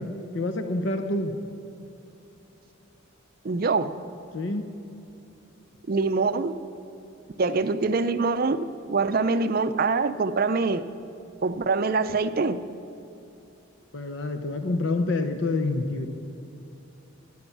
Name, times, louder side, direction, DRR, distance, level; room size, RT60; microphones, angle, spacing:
voice 1, 0.0-1.3 4.3-4.7 13.9-16.1, left 2 dB, 60° left, 7 dB, 0.7 m, -27 dB
voice 2, 3.4-3.9 5.9-6.5 7.4-10.8 11.4-12.6, right 4 dB, 45° right, 12 dB, 0.5 m, -24 dB
10.5 x 9.5 x 7.2 m, 2.8 s
head